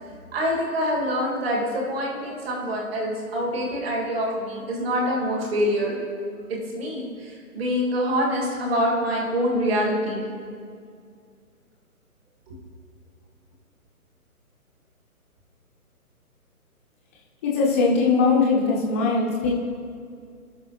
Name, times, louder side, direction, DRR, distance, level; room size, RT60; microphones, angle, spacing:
voice 1, 0.3-5.9 6.5-10.2 12.5-12.6, equal, 40° right, -2 dB, 2.1 m, -25 dB
voice 2, 17.4-19.5, left 4 dB, 10° left, -3 dB, 0.7 m, -20 dB
17.5 x 6.0 x 3.0 m, 2.2 s
figure-of-eight pair, 140°, 44 cm